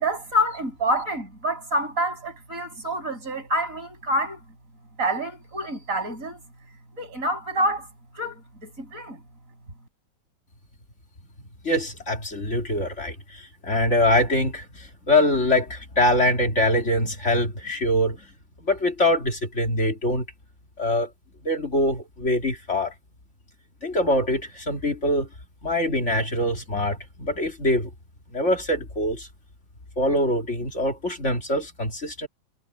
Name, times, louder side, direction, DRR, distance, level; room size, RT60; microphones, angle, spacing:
voice 1, 0.0-4.4 5.0-6.4 7.0-7.9 8.1-9.2, equal, 40° right, 6.9 m, -27 dB
voice 2, 11.6-18.2 18.7-20.2 20.8-21.1 21.4-22.9 23.8-25.3 25.6-27.9 28.3-29.3 30.0-32.3, left 1 dB, 35° left, 2.7 m, -23 dB
omnidirectional pair, 2.2 m